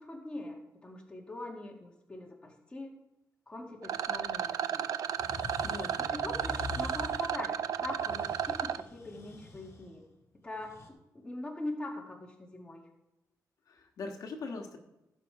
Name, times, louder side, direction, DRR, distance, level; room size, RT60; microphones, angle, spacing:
voice 1, 0.0-3.0 3.5-4.9 6.0-10.0 10.4-12.9, left 2 dB, 15° left, 0 dB, 2.1 m, -42 dB
Rattle, 3.8-8.8, right 8 dB, 65° right, 0.5 m, -33 dB
sound 1, 5.2-10.9, left 3 dB, 45° left, 2.0 m, -45 dB
voice 2, 5.6-6.1 13.7-14.8, left 3 dB, 65° left, 3 dB, 1.6 m, -41 dB
16.0 x 7.3 x 5.0 m, 0.93 s
wide cardioid pair, 175°, 7 cm